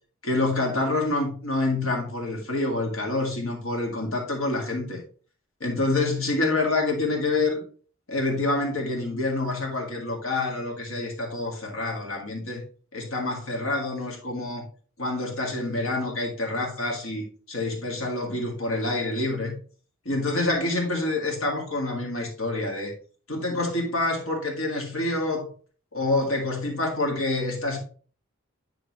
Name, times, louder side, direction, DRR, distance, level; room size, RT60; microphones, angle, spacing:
voice 1, 0.2-5.0 5.6-7.6 8.1-12.6 12.9-14.7 15.0-19.6 20.1-22.9 23.3-25.5 25.9-27.8, left 2 dB, 80° left, 1.8 m, -27 dB
10.5 x 3.7 x 3.0 m
head